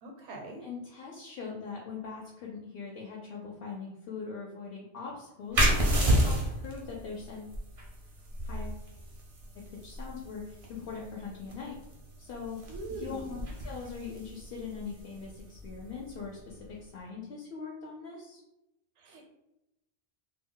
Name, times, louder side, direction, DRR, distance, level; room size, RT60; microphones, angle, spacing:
voice 1, 0.0-0.7 12.7-13.2 19.0-19.3, right 2 dB, 80° right, 1 dB, 0.9 m, -42 dB
voice 2, 0.6-7.5 8.4-8.8 9.7-11.8 12.2-12.6 13.0-18.4, left 5 dB, 65° left, -3 dB, 0.7 m, -41 dB
sound 1, 5.5-16.8, right 1 dB, 40° right, 0.5 m, -32 dB
2.3 x 2.1 x 3.7 m, 0.90 s
omnidirectional pair, 1.2 m